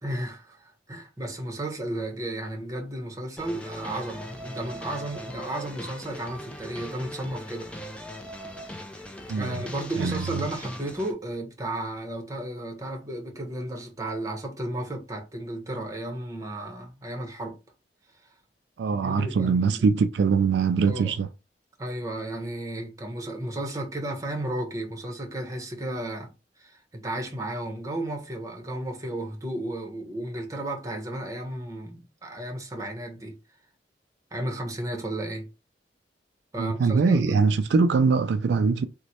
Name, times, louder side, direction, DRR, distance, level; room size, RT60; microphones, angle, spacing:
voice 1, 0.0-8.0 9.3-17.6 18.2-18.3 19.0-19.8 20.8-21.2 21.8-26.3 26.6-33.4 34.3-35.5 36.5-37.4, right 1 dB, 20° right, 0.9 m, -33 dB
sound 1, 3.4-11.1, equal, 5° left, 0.4 m, -40 dB
voice 2, 18.8-21.3 36.6-38.9, right 5 dB, 75° right, 0.3 m, -22 dB
3.0 x 2.1 x 4.1 m
head